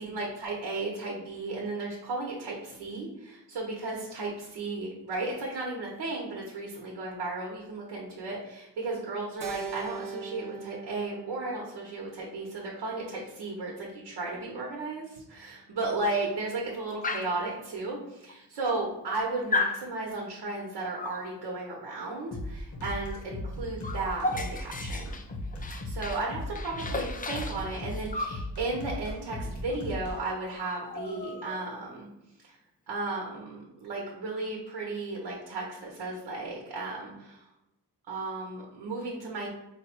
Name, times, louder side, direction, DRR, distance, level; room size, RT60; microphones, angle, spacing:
voice 1, 0.0-25.1 25.8-32.1 32.4-32.6 32.9-37.4 38.1-39.5, right 3 dB, 90° right, -2 dB, 0.9 m, -34 dB
Keyboard (musical), 9.4-13.8, right 5 dB, 55° right, 0.7 m, -42 dB
Dog, 17.0-17.4 18.3-18.4 18.6-19.2 19.5-19.8 21.0-21.3 23.1-23.3 23.5-26.3 26.6-28.4 29.7-29.8 30.1-30.3 30.6-31.8, left 3 dB, 20° left, 0.4 m, -34 dB
sound 1, 22.3-30.2, left 1 dB, 45° left, 0.9 m, -37 dB
4.6 x 2.1 x 4.4 m, 0.89 s
wide cardioid pair, 100°, 40 cm